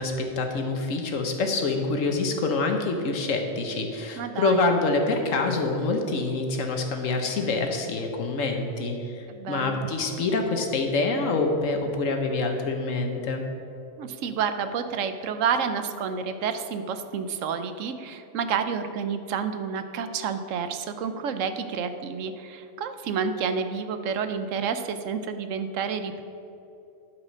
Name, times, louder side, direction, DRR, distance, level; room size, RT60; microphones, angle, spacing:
voice 1, 0.0-13.4, left 3 dB, 75° left, 4 dB, 1.4 m, -26 dB
voice 2, 4.2-4.7 9.4-9.8 14.0-26.2, right 6 dB, 75° right, 9 dB, 1.0 m, -29 dB
11.5 x 4.9 x 6.2 m, 2.8 s
omnidirectional pair, 1.3 m